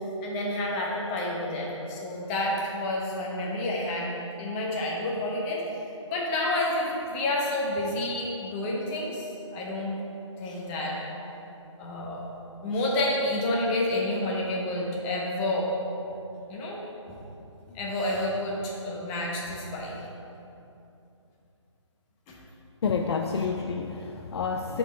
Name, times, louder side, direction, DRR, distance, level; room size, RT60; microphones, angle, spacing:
voice 1, 0.2-5.6 6.1-10.0 10.4-11.0 11.8-12.2 12.6-15.7 16.5-17.2 17.7-20.0 22.3-22.4, left 1 dB, 20° left, -3 dB, 1.2 m, -29 dB
voice 2, 22.8-24.8, left 5 dB, 55° left, 4 dB, 0.5 m, -29 dB
8.8 x 4.6 x 4.2 m, 2.8 s
hypercardioid pair, 150°, 16 cm